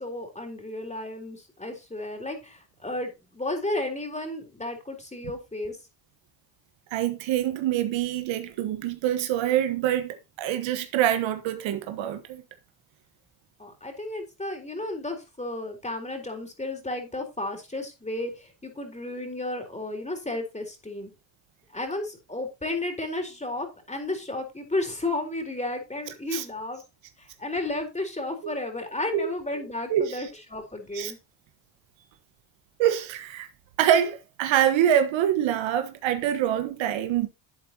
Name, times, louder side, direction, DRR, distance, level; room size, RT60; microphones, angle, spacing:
voice 1, 0.0-5.8 13.6-21.1 21.7-26.8 27.2-31.2, left 2 dB, 15° left, 3.9 m, -33 dB
voice 2, 6.9-12.4 26.3-26.4 28.4-28.5 29.1-29.3 29.9-30.3 30.9-31.1 32.8-33.5 33.8-37.3, right 10 dB, 70° right, 1.4 m, -25 dB
11.5 x 8.2 x 2.9 m
supercardioid pair, 65°, 47 cm